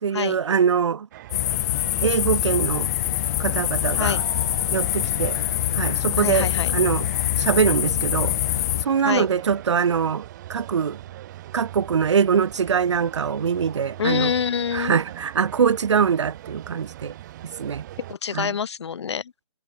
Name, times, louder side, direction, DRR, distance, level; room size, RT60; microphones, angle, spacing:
voice 1, 0.0-1.1 2.0-2.9 3.4-4.2 4.7-5.4 5.7-7.1 7.4-8.3 8.8-10.2 10.5-11.0 11.5-14.3 14.7-17.1 17.6-17.8 18.3-18.6, right 7 dB, 65° right, 1.1 m, -23 dB
sound 1, 1.1-18.2, right 14 dB, 35° right, 7.5 m, -41 dB
sound 2, 1.3-8.9, left 14 dB, 30° left, 1.1 m, -24 dB
voice 2, 6.2-6.8 9.0-9.3 14.0-15.0 18.1-19.3, left 7 dB, 60° left, 4.9 m, -26 dB
hypercardioid pair, 150°, 16 cm